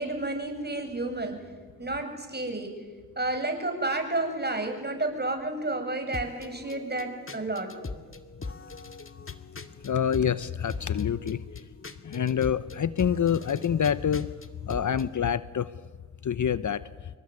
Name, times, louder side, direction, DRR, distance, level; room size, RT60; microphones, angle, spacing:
voice 1, 0.0-1.4 1.8-2.8 3.2-7.7, right 2 dB, 25° right, 5 dB, 7.7 m, -31 dB
sound 1, 6.1-15.1, left 3 dB, 30° left, 2.3 m, -42 dB
voice 2, 9.8-11.4 12.0-14.3 14.6-15.7 16.2-16.8, left 8 dB, 50° left, 16 dB, 0.9 m, -26 dB
26.5 x 23.0 x 9.7 m, 1.4 s
supercardioid pair, 50°, 40 cm